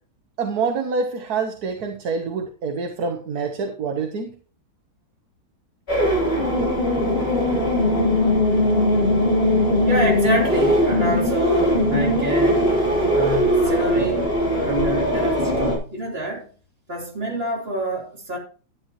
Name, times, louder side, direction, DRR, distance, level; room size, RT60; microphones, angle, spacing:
voice 1, 0.4-4.3, right 5 dB, 50° right, 1.5 m, -26 dB
sound 1, 5.9-15.8, equal, 25° left, 4.2 m, -20 dB
voice 2, 9.9-12.6 13.1-16.5 16.9-18.4, right 1 dB, 25° right, 3.5 m, -27 dB
11.5 x 10.5 x 3.0 m
omnidirectional pair, 2.4 m